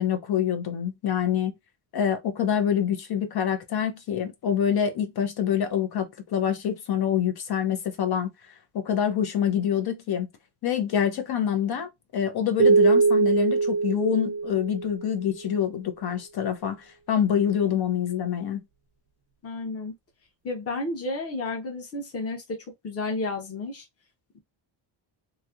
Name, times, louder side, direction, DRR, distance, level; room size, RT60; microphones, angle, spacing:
voice 1, 0.0-1.5 1.9-8.3 8.7-10.3 10.6-16.8 17.1-18.6, left 9 dB, 50° left, 0.9 m, -26 dB
sound 1, 12.6-15.2, right 4 dB, 65° right, 0.7 m, -21 dB
voice 2, 19.4-19.9 20.4-23.8, left 2 dB, 30° left, 1.1 m, -32 dB
3.1 x 2.8 x 2.5 m
cardioid pair, 160°, 47 cm